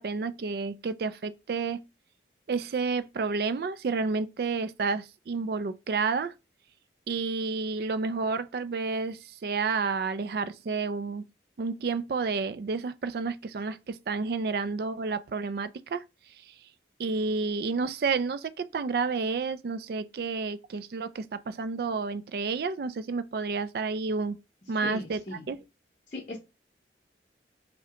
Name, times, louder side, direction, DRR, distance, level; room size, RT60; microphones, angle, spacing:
voice 1, 0.0-1.8 2.5-6.3 7.1-11.2 11.6-16.0 17.0-24.4 24.7-25.2 25.5-25.6, right 4 dB, 55° right, 0.3 m, -30 dB
voice 2, 24.6-25.5 26.1-26.4, left 2 dB, 40° left, 0.7 m, -38 dB
4.9 x 2.1 x 2.9 m
head